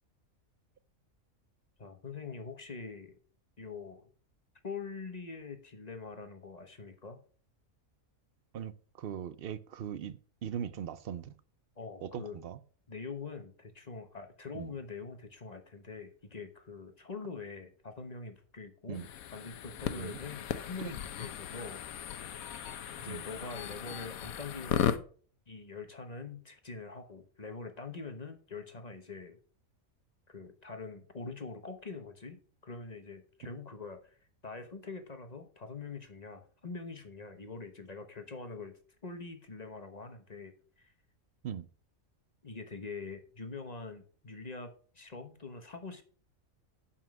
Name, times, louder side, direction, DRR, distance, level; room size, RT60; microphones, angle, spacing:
voice 1, 1.8-3.2 3.6-4.0 4.6-7.2 11.8-12.4 12.9-19.0 19.3-22.3 23.0-25.0 25.5-29.4 30.3-34.0 34.4-38.8 39.0-40.5 40.8-40.9 42.4-46.0, left 4 dB, 30° left, 1.0 m, -44 dB
voice 2, 8.5-11.3 12.0-12.6 14.5-14.7 18.9-19.1 20.0-20.2 23.1-23.2 41.4-41.6, right 8 dB, 60° right, 0.6 m, -40 dB
sound 1, 18.9-25.0, left 9 dB, 90° left, 1.2 m, -36 dB
7.2 x 5.7 x 6.2 m
omnidirectional pair, 1.4 m